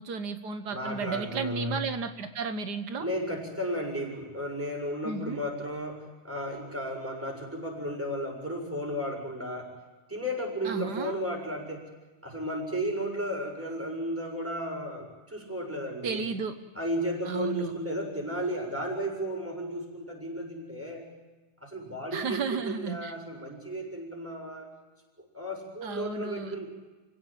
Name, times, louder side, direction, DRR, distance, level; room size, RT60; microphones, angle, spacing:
voice 1, 0.0-3.0 5.0-5.4 10.6-11.1 16.0-16.5 17.2-17.7 22.1-23.1 25.8-26.5, right 5 dB, 90° right, 8 dB, 0.9 m, -33 dB
voice 2, 0.7-1.8 3.0-9.7 10.1-11.8 12.2-16.2 16.8-21.0 21.6-24.7 25.3-26.7, equal, 5° right, 1 dB, 7.2 m, -34 dB
29.5 x 17.0 x 9.0 m, 1.2 s
omnidirectional pair, 3.7 m